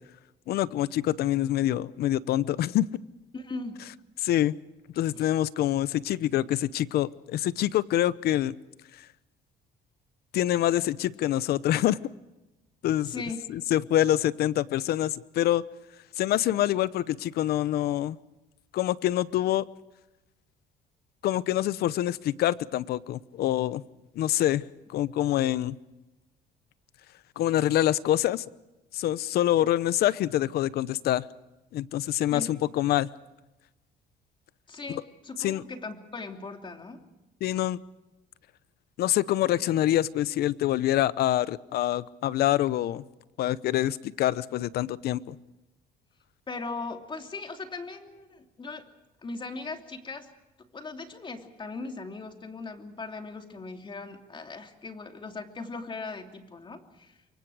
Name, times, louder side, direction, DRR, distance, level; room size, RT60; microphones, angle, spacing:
voice 1, 0.5-2.9 4.2-4.5 5.0-8.5 10.3-12.0 12.8-13.1 13.5-15.6 16.2-18.2 18.7-19.6 21.2-23.8 24.1-24.6 24.9-25.8 27.4-28.4 28.9-31.2 31.7-33.1 35.4-35.6 37.4-37.8 39.0-43.0 43.4-45.4, left 13 dB, 70° left, 18 dB, 0.8 m, -26 dB
voice 2, 3.3-3.8 5.1-5.3 13.0-13.4 32.3-32.5 34.7-37.0 46.5-48.9 49.2-50.3 50.7-57.2, left 3 dB, 30° left, 4 dB, 2.9 m, -39 dB
29.0 x 23.5 x 4.9 m, 1.0 s
cardioid pair, 110°, 17 cm